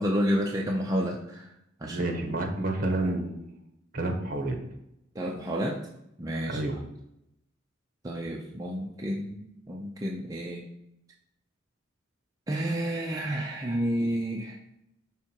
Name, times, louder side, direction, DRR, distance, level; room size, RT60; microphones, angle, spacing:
voice 1, 0.0-1.5 1.8-2.0 5.2-5.8 6.2-6.6 8.0-10.7 12.5-14.6, equal, 20° right, -1 dB, 0.5 m, -30 dB
voice 2, 1.8-3.5 3.9-4.6 6.5-6.7, right 2 dB, 45° right, 3 dB, 1.1 m, -29 dB
5.9 x 3.7 x 4.4 m, 0.81 s
head